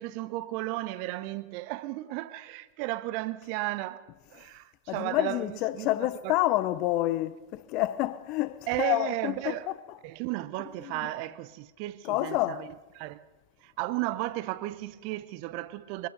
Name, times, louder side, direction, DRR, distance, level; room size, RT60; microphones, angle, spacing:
voice 1, 0.0-4.0 4.3-5.9 6.2-6.4 8.7-9.7 10.0-12.7 12.9-13.2 13.6-16.1, right 17 dB, 45° right, 0.8 m, -34 dB
voice 2, 4.9-9.5 12.0-12.6, left 16 dB, 40° left, 0.7 m, -28 dB
24.0 x 20.0 x 5.3 m
figure-of-eight pair, 95°, 0 cm